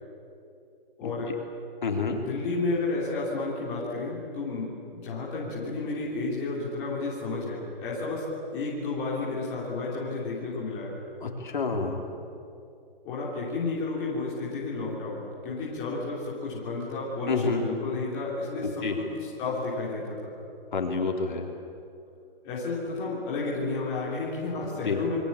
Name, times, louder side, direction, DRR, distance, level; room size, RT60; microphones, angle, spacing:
voice 1, 1.0-1.3 2.1-10.9 13.0-20.4 22.4-25.2, left 3 dB, 10° left, -6 dB, 3.2 m, -32 dB
voice 2, 1.8-2.2 11.2-12.0 17.3-17.6 18.6-19.0 20.7-21.5 24.8-25.0, left 4 dB, 55° left, 2 dB, 4.0 m, -28 dB
28.0 x 23.0 x 8.6 m, 2.6 s
hypercardioid pair, 180°, 29 cm